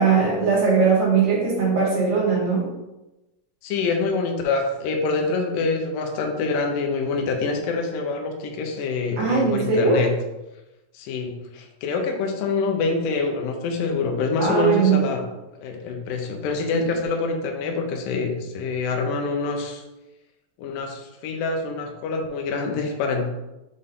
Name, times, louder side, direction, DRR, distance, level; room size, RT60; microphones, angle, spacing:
voice 1, 0.0-2.6 9.2-10.0 14.4-15.0, right 5 dB, 50° right, -5 dB, 1.8 m, -19 dB
voice 2, 3.6-10.1 10.9-15.2 15.6-19.8 20.6-23.3, left 4 dB, 75° left, 3 dB, 2.1 m, -26 dB
6.5 x 4.1 x 3.7 m, 1.0 s
omnidirectional pair, 4.7 m